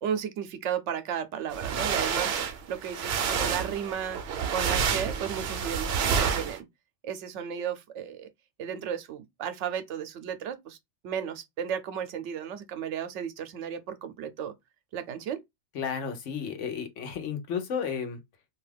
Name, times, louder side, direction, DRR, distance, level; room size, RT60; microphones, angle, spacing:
voice 1, 0.0-4.2 4.5-6.7 7.0-8.3 8.6-10.8 11.0-14.5 14.9-15.4, right 8 dB, 85° right, 0.9 m, -34 dB
sound 1, 1.5-6.6, right 7 dB, 65° right, 0.8 m, -29 dB
voice 2, 15.7-18.2, left 6 dB, 90° left, 1.1 m, -32 dB
2.7 x 2.3 x 3.3 m
omnidirectional pair, 1.2 m